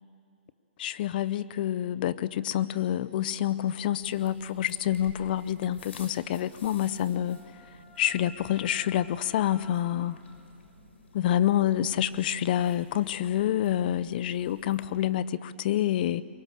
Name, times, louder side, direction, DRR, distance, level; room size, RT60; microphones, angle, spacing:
voice 1, 0.8-7.4 8.0-10.2 11.1-16.2, left 11 dB, 50° left, 17 dB, 0.7 m, -27 dB
sound 1, 4.0-15.1, left 2 dB, 85° left, 4.6 m, -53 dB
Wind instrument woodwind instrument, 5.6-10.3, equal, 5° left, 4.1 m, -56 dB
23.5 x 23.5 x 6.7 m, 2.5 s
hypercardioid pair, 145°, 6 cm